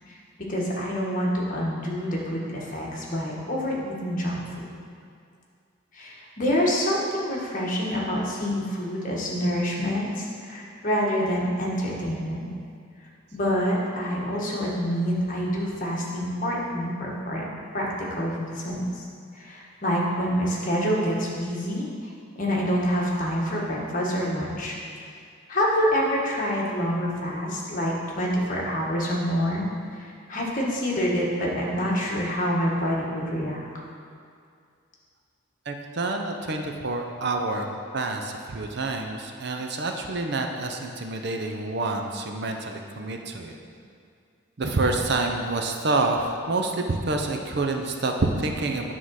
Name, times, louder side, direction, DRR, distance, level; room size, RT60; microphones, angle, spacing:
voice 1, 0.5-4.7 5.9-12.5 13.3-17.5 17.7-19.0 19.3-21.9 22.3-24.7 25.5-29.7 30.0-33.6, equal, 40° left, -4 dB, 1.4 m, -27 dB
voice 2, 35.7-37.7 37.9-43.5 44.6-48.9, right 2 dB, 55° right, 3 dB, 0.6 m, -27 dB
9.5 x 3.8 x 6.3 m, 2.3 s
head